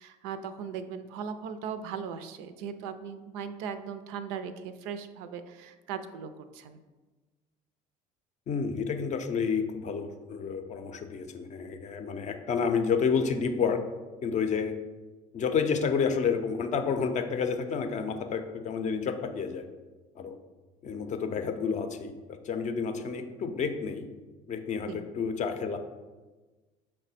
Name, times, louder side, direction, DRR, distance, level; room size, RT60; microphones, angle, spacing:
voice 1, 0.0-6.8 24.9-25.0, right 7 dB, 75° right, 10 dB, 0.4 m, -38 dB
voice 2, 8.5-13.8 14.2-14.8 15.3-19.7 20.2-20.4 20.8-24.1 24.5-25.8, left 6 dB, 45° left, 7 dB, 0.5 m, -30 dB
5.4 x 2.1 x 4.1 m, 1.3 s
hypercardioid pair, 75°, 18 cm